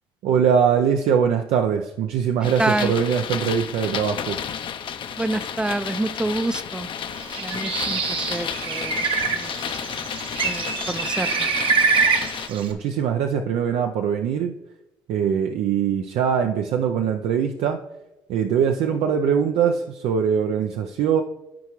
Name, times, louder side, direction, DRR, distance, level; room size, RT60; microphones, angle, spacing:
voice 1, 0.2-4.4 12.5-14.6 15.1-17.8 18.3-21.2, right 7 dB, 80° right, 5 dB, 0.4 m, -22 dB
sound 1, 2.4-12.5, left 8 dB, 55° left, 0.6 m, -32 dB
voice 2, 2.6-2.9 5.2-6.9 7.4-9.0 9.3-9.5 10.4-11.5, right 2 dB, 10° right, 14 dB, 0.4 m, -27 dB
Bird, 7.2-12.7, right 5 dB, 60° right, 1.0 m, -25 dB
13.0 x 4.7 x 3.0 m, 0.99 s
supercardioid pair, 70°, 10 cm